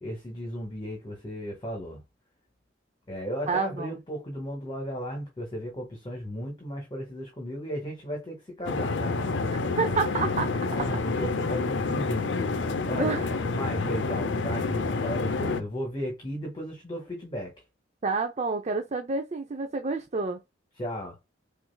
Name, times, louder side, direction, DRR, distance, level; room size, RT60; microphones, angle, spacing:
voice 1, 0.0-2.0 3.1-9.2 10.6-12.4 12.9-17.6 20.8-21.2, equal, 30° left, 1.5 m, -35 dB
voice 2, 3.4-3.9 9.5-10.9 12.9-13.3 18.0-20.4, right 4 dB, 40° right, 0.6 m, -29 dB
sound 1, 8.7-15.6, left 3 dB, 75° left, 0.6 m, -28 dB
6.0 x 2.6 x 2.2 m
head